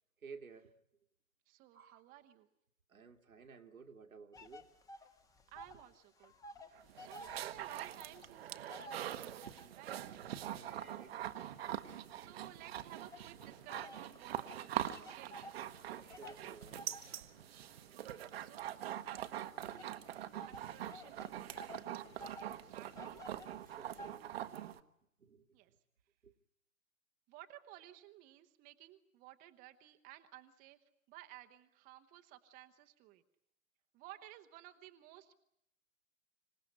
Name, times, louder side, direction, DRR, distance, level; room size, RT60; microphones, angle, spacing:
voice 1, 0.2-0.7 1.7-2.0 2.9-4.7 10.5-11.2 16.0-17.0 19.6-20.0 23.6-24.5 25.2-25.5 26.2-26.3, right 5 dB, 75° right, 2.2 m, -55 dB
voice 2, 1.5-2.5 5.5-6.3 7.0-10.0 12.2-15.4 17.9-18.1 18.3-23.3 25.5-25.7 27.3-30.8 31.1-33.2 33.9-35.4, right 14 dB, 20° right, 1.1 m, -57 dB
sound 1, 4.3-5.9 6.2-9.8 10.4-12.5 13.1-24.2, left 1 dB, 10° left, 1.2 m, -54 dB
Swiss Mountain Dog Panting, 6.8-24.8, right 11 dB, 45° right, 1.3 m, -44 dB
26.5 x 17.5 x 10.0 m
figure-of-eight pair, 125°, 41 cm